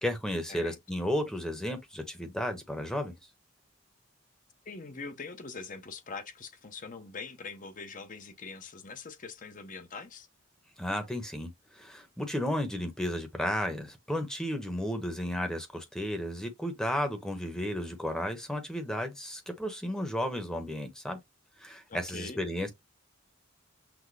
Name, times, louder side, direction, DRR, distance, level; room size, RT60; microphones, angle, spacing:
voice 1, 0.0-3.1 10.8-21.2 21.6-22.7, equal, 5° left, 0.9 m, -33 dB
voice 2, 4.7-10.3 21.9-22.4, left 4 dB, 40° left, 0.8 m, -43 dB
6.1 x 2.1 x 3.2 m
head